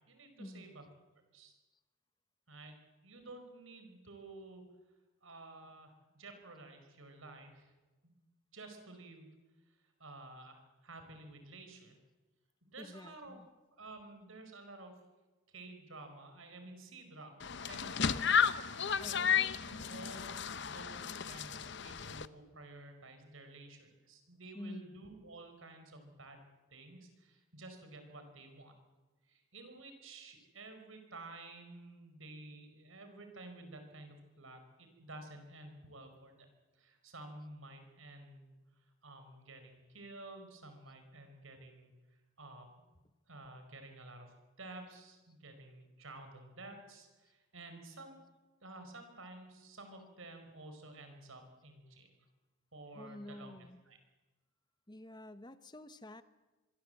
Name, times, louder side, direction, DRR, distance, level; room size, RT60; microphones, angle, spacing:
voice 1, 0.1-0.8 1.3-1.5 2.5-4.6 5.2-7.7 8.0-8.1 8.5-9.4 9.7-12.0 12.6-13.4 13.8-15.0 15.5-18.3 18.8-28.7 29.3-36.5 36.7-43.0 43.3-48.2 48.6-52.1 52.7-53.6 53.8-54.0, right 2 dB, 75° right, 6 dB, 5.1 m, -52 dB
voice 2, 12.8-13.5 18.0-18.3 19.0-19.4 24.5-24.9 52.9-53.8 54.9-56.2, left 1 dB, 20° left, 12 dB, 1.0 m, -48 dB
sound 1, 17.4-22.3, left 7 dB, 55° left, 0.8 m, -33 dB
25.5 x 23.0 x 8.0 m, 1.2 s
head